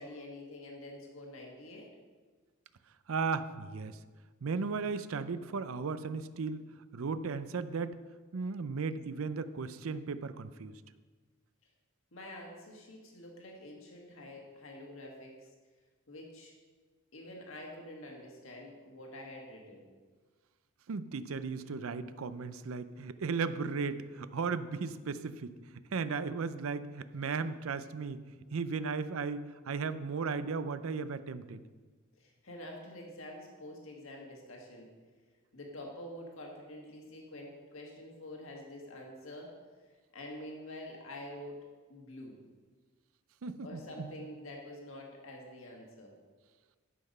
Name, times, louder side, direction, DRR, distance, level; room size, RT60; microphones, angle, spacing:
voice 1, 0.0-1.9 12.1-15.5 16.1-16.5 17.1-19.9 28.4-28.5 32.2-34.9 35.5-39.6 40.1-42.4 43.6-46.2, left 1 dB, 70° left, 0 dB, 1.7 m, -47 dB
voice 2, 3.1-4.0 4.4-6.6 6.9-8.0 8.3-10.7 20.9-25.5 25.9-28.2 28.5-31.6 43.4-44.1, right 4 dB, 80° right, 13 dB, 0.5 m, -36 dB
12.0 x 5.9 x 5.4 m, 1.4 s
head